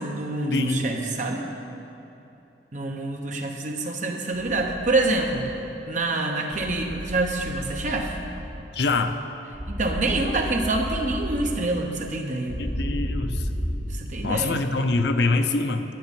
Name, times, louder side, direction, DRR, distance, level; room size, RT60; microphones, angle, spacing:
voice 1, 0.0-1.5 2.7-5.5 5.9-8.2 9.7-12.6 13.9-14.6, right 2 dB, 45° right, 2 dB, 1.1 m, -26 dB
voice 2, 0.5-0.9 8.7-9.2 12.6-13.5 14.2-15.8, left 3 dB, 65° left, 8 dB, 0.6 m, -24 dB
sound 1, 4.3-5.5 6.5-8.5 9.5-11.5 12.5-13.8, equal, 10° right, 2.1 m, -32 dB
10.5 x 9.5 x 5.3 m, 2.9 s
head